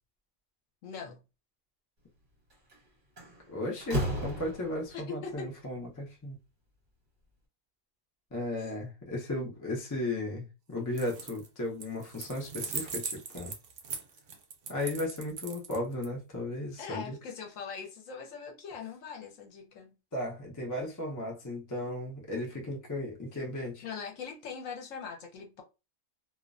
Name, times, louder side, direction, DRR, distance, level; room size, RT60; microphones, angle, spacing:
voice 1, 0.8-1.2 4.9-5.5 8.6-8.7 16.8-19.9 23.8-25.6, left 6 dB, 75° left, 1.0 m, -41 dB
Slam, 2.5-2.7 3.2-5.0, equal, 40° right, 1.0 m, -34 dB
voice 2, 3.5-6.4 8.3-13.5 14.7-17.2 20.1-23.8, left 1 dB, 20° left, 0.5 m, -35 dB
sound 1, 10.9-11.5 11.8-16.1, right 5 dB, 60° right, 0.6 m, -39 dB
2.4 x 2.1 x 2.4 m
omnidirectional pair, 1.4 m